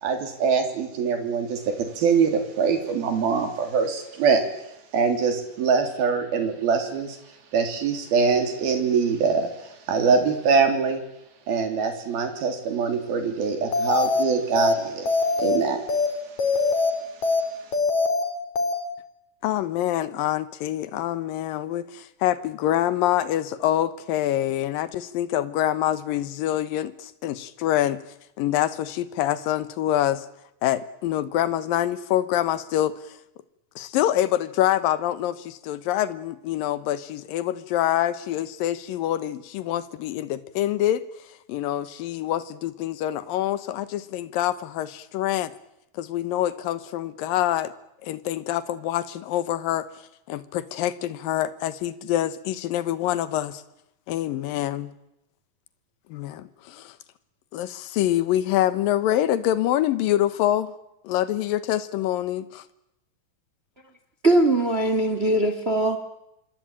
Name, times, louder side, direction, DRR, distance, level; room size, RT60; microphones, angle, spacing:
voice 1, 0.0-4.4 4.9-7.2 7.5-11.0 11.5-15.8, right 5 dB, 85° right, 6 dB, 5.1 m, -23 dB
sound 1, 13.7-14.2 14.6-14.7 15.1-15.6 15.9-16.1 16.4-16.9 17.2-17.4 17.7-18.2 18.6-18.7, left 4 dB, 50° left, 4.7 m, -22 dB
voice 2, 19.4-28.0 28.4-30.3 30.6-33.0 33.8-41.0 41.5-45.5 45.9-47.7 48.0-49.9 50.3-53.6 54.1-54.9 56.1-57.0 57.5-60.7 61.0-62.6, left 12 dB, 75° left, 14 dB, 2.9 m, -25 dB
voice 3, 64.2-66.0, right 1 dB, 20° right, 9 dB, 1.8 m, -21 dB
27.0 x 23.0 x 8.9 m, 0.85 s
omnidirectional pair, 4.2 m